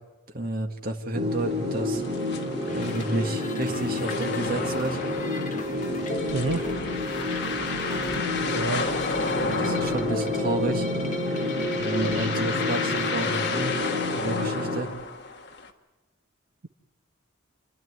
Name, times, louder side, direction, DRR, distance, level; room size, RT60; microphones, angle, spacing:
voice 1, 0.3-2.0 2.7-5.0 9.4-10.9 11.8-13.8 14.2-14.9, right 2 dB, 45° right, 4 dB, 1.8 m, -30 dB
sound 1, 1.1-14.8, left 1 dB, 25° right, 4.5 m, -30 dB
sound 2, 1.3-15.7, left 4 dB, 55° left, 1.6 m, -33 dB
sound 3, 2.7-13.6, left 3 dB, 40° left, 1.8 m, -38 dB
voice 2, 6.3-6.7 8.1-8.3 8.5-8.9 11.4-11.5 12.0-12.5, right 3 dB, 70° right, 7 dB, 0.8 m, -30 dB
29.0 x 10.5 x 9.5 m, 1.3 s
head